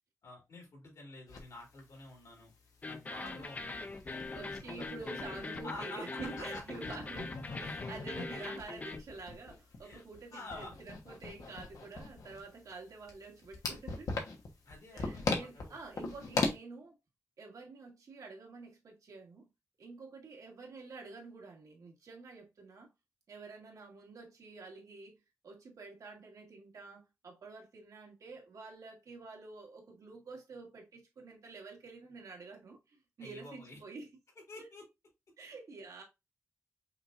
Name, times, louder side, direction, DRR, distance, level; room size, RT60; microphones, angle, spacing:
voice 1, 0.2-2.5 2.8-5.2 5.6-6.6 6.9-7.0 9.8-10.0 10.3-10.7 14.6-15.8 33.2-33.8 34.5-34.8, left 2 dB, 70° left, 2.7 m, -48 dB
sound 1, 1.3-1.4 1.8-1.9 2.2-2.3 2.8-5.9 6.2-16.5, left 3 dB, 90° left, 1.2 m, -40 dB
sound 2, 2.8-9.0, left 3 dB, 25° left, 0.4 m, -42 dB
voice 2, 3.2-3.5 4.3-14.1 14.9-17.0 17.4-19.5 19.8-22.9 23.3-34.1 34.6-34.7 35.4-36.0, right 3 dB, 85° right, 1.7 m, -48 dB
5.6 x 3.4 x 2.5 m
wide cardioid pair, 155°, 6 cm